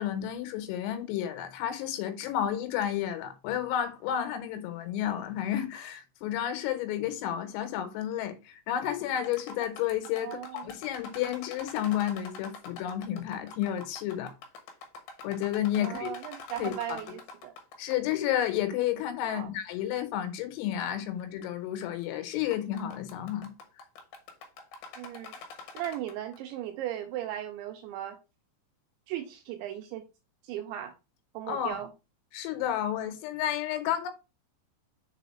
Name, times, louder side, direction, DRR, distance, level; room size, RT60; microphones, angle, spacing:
voice 1, 0.0-14.3 15.2-16.1 16.6-17.0 17.8-23.5 31.5-31.8 32.3-34.1, left 11 dB, 90° left, 3.7 m, -31 dB
sound 1, 9.1-18.1 18.4-18.5 19.2-19.3 20.0-20.1 21.2-21.5 21.8-22.0 22.3-26.4, left 4 dB, 70° left, 2.4 m, -46 dB
voice 2, 10.2-10.7 15.8-17.5 19.2-19.5 25.0-25.4 25.7-28.2 29.1-30.1 30.4-30.9 31.3-31.9, right 12 dB, 85° right, 2.6 m, -37 dB
6.9 x 3.9 x 4.2 m
omnidirectional pair, 5.8 m